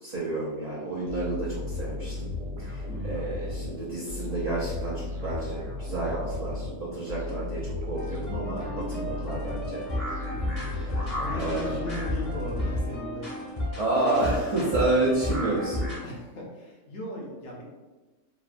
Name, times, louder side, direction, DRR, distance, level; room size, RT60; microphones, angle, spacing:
voice 1, 0.0-2.3 2.6-9.8 10.8-11.8 13.8-15.9, right 2 dB, 55° right, -6 dB, 0.4 m, -30 dB
sound 1, 1.1-13.3, left 2 dB, 75° right, 1.0 m, -35 dB
voice 2, 2.9-3.5 10.3-13.3 13.5-13.8 16.0-17.6, left 1 dB, 70° left, -3 dB, 1.0 m, -38 dB
sound 2, 7.9-16.0, left 1 dB, 35° left, 0.8 m, -33 dB
3.1 x 2.2 x 2.4 m, 1.2 s
omnidirectional pair, 1.3 m